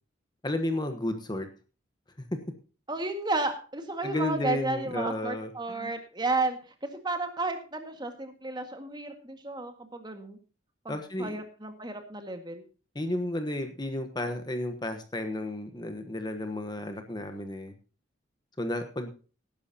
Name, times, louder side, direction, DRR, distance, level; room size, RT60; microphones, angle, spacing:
voice 1, 0.4-1.5 2.3-2.4 4.0-5.9 10.9-11.4 12.9-17.7 18.6-19.1, left 1 dB, 20° left, 7 dB, 1.2 m, -32 dB
voice 2, 2.9-10.4 10.8-12.6, right 2 dB, 25° right, 6 dB, 1.8 m, -33 dB
18.5 x 10.5 x 2.8 m, 0.35 s
head